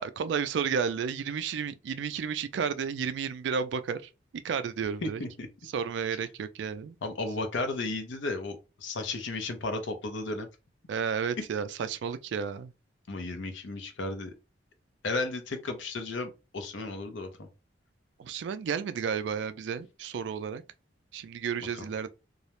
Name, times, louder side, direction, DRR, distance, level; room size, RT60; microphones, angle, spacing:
voice 1, 0.0-4.1 4.4-5.2 5.7-6.9 10.9-12.7 18.2-20.6 21.1-22.1, right 6 dB, 65° right, 0.3 m, -32 dB
voice 2, 5.0-5.5 7.0-10.5 13.1-14.3 15.0-17.5 21.7-21.9, left 2 dB, 75° left, 0.6 m, -34 dB
2.3 x 2.0 x 2.9 m
head